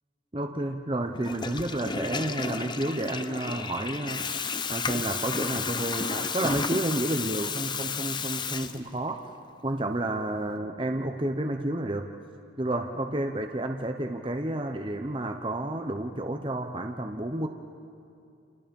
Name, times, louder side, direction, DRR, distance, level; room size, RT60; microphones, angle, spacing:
voice 1, 0.3-9.2 9.6-12.1 12.6-17.5, right 1 dB, 25° right, 4 dB, 0.8 m, -31 dB
Water tap faucet / Toilet flush, 1.1-9.2, left 5 dB, 25° left, 0.7 m, -32 dB
29.5 x 27.5 x 5.4 m, 2.5 s
head